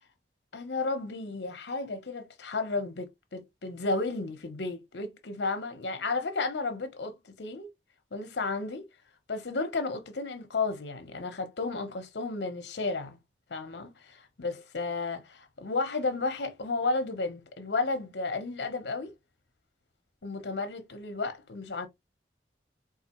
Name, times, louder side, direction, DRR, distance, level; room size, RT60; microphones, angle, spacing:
voice 1, 0.5-7.7 8.1-8.9 9.3-13.2 13.5-19.1 20.2-21.9, left 3 dB, 70° left, 0.7 m, -33 dB
4.0 x 2.4 x 2.9 m
head